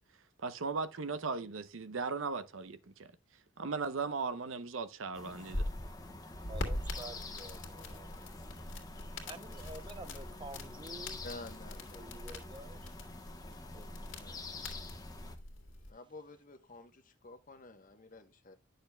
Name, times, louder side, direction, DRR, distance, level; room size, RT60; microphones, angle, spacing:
voice 1, 0.4-3.1 3.6-5.6, right 4 dB, 90° right, 0.7 m, -37 dB
sound 1, 5.1-15.4, left 3 dB, 20° left, 1.0 m, -48 dB
sound 2, 5.5-15.9, left 1 dB, 70° left, 2.0 m, -43 dB
voice 2, 6.5-8.3 9.3-11.2 11.9-12.9 13.7-14.0, right 2 dB, 25° right, 0.6 m, -49 dB
voice 3, 11.2-12.1 14.1-14.4 15.9-18.5, left 2 dB, 45° left, 1.0 m, -50 dB
10.0 x 6.6 x 2.2 m
head